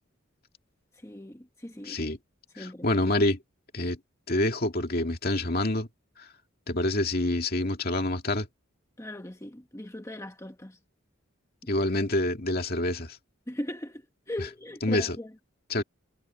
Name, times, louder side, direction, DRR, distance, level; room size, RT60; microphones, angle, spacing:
voice 1, 1.0-2.0 2.6-2.9 9.0-10.8 13.5-15.3, left 1 dB, 15° left, 1.3 m, -39 dB
voice 2, 1.8-2.2 2.6-3.4 3.7-4.0 4.3-5.9 6.2-6.3 6.7-8.5 11.7-13.2 14.8-15.2 15.7-15.8, left 1 dB, 50° left, 2.3 m, -27 dB
head